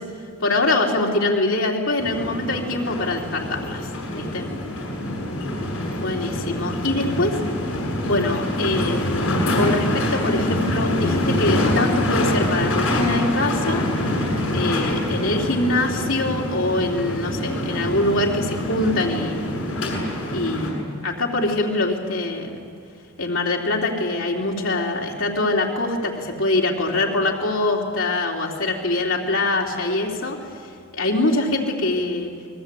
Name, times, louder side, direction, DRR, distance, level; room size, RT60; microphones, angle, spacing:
voice 1, 0.4-4.4 5.9-7.4 8.0-13.9 14.5-19.6 20.3-22.6 23.2-30.6 30.9-32.3, left 2 dB, 70° left, 0 dB, 3.5 m, -24 dB
sound 1, 2.0-20.7, left 1 dB, 85° left, 7.9 m, -25 dB
28.5 x 22.0 x 8.6 m, 2.2 s
head